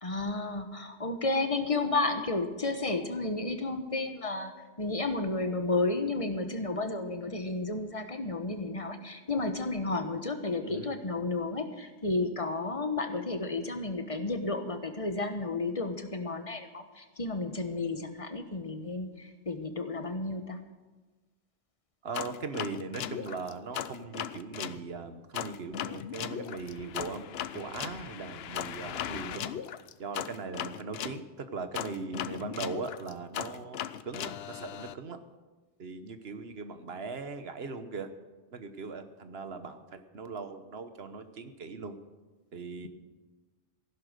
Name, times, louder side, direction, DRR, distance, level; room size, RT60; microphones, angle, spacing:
voice 1, 0.0-4.5 4.8-20.6, left 3 dB, 30° left, 7 dB, 1.2 m, -32 dB
voice 2, 22.0-29.6 30.0-33.8 34.0-35.2 35.8-38.1 38.5-42.0 42.5-42.9, right 4 dB, 65° right, 9 dB, 1.3 m, -39 dB
sound 1, 22.1-24.8 25.3-31.2 31.7-34.9, left 9 dB, 65° left, 0.8 m, -37 dB
15.5 x 11.5 x 6.6 m, 1.2 s
omnidirectional pair, 1.1 m